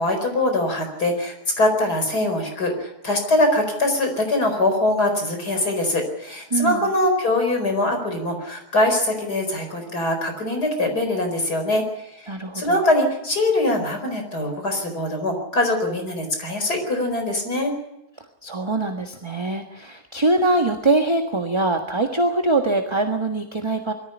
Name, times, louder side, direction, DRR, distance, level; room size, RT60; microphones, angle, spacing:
voice 1, 0.0-17.7, left 1 dB, 85° left, 4 dB, 5.1 m, -23 dB
voice 2, 6.5-6.9 12.3-12.8 18.4-23.9, right 2 dB, 20° right, 4 dB, 1.5 m, -23 dB
22.0 x 15.0 x 9.9 m, 0.87 s
omnidirectional pair, 1.7 m